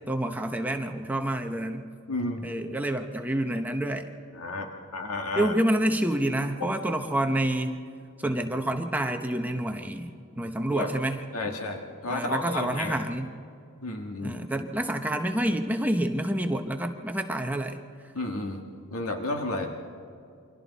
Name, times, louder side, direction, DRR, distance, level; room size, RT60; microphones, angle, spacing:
voice 1, 0.1-1.9 2.4-4.1 5.4-7.8 8.2-11.2 11.5-11.6 12.1-13.3 14.2-17.8, right 1 dB, 10° right, 5 dB, 0.9 m, -28 dB
voice 2, 2.1-2.5 4.3-5.6 6.6-6.7 10.7-10.9 11.3-13.0 13.8-14.4 18.2-18.6 18.9-19.7, left 2 dB, 85° left, 3 dB, 1.7 m, -32 dB
28.5 x 24.5 x 4.1 m, 2.5 s
head